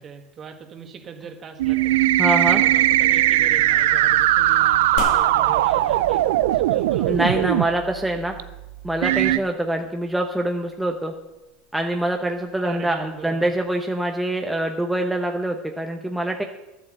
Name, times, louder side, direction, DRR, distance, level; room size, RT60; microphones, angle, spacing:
voice 1, 0.0-2.0 2.5-7.3 9.1-9.4 12.6-13.5, right 6 dB, 40° right, 5 dB, 1.9 m, -40 dB
sound 1, 1.6-7.6 8.4-8.5 9.0-9.4, right 14 dB, 80° right, 0.4 m, -19 dB
voice 2, 2.2-2.6 7.1-8.3 8.8-11.1 11.7-16.4, right 1 dB, 5° right, 3 dB, 1.0 m, -24 dB
sound 2, 11.4-13.7, left 6 dB, 70° left, 1.7 m, -40 dB
11.0 x 7.6 x 7.9 m, 1.0 s
hypercardioid pair, 95°, 0 cm